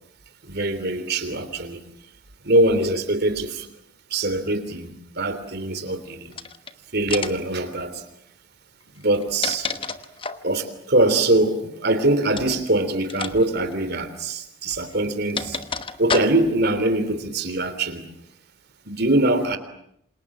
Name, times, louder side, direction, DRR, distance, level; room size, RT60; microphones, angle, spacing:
voice 1, 0.4-1.8 2.4-3.7 4.1-6.3 6.9-8.0 9.0-9.7 10.4-15.6 16.0-18.0 18.8-19.6, right 2 dB, 50° right, 10 dB, 3.3 m, -23 dB
sound 1, 6.3-6.7 7.1-7.5 9.0-10.5 12.3-12.6 13.1-13.3 13.6-13.7 14.7-16.6, left 4 dB, 25° left, 1.1 m, -30 dB
28.0 x 27.0 x 7.5 m, 0.73 s
head